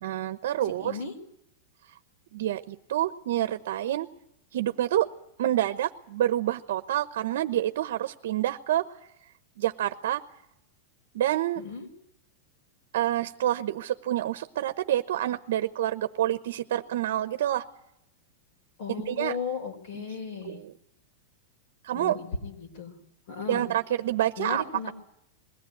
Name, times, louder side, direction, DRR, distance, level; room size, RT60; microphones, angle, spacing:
voice 1, 0.0-1.0 2.3-4.1 4.5-5.1 5.4-8.8 9.6-10.2 11.1-11.6 12.9-17.6 19.1-19.4 19.9-20.0 20.4-20.7 21.8-22.2 23.5-24.9, right 12 dB, 70° right, 10 dB, 1.0 m, -28 dB
voice 2, 0.6-1.1 11.5-11.9 18.8-20.6 21.9-22.9 23.3-23.6 24.4-24.9, left 5 dB, 50° left, 4 dB, 4.9 m, -35 dB
22.0 x 16.5 x 9.3 m, 0.80 s
supercardioid pair, 165°, 0 cm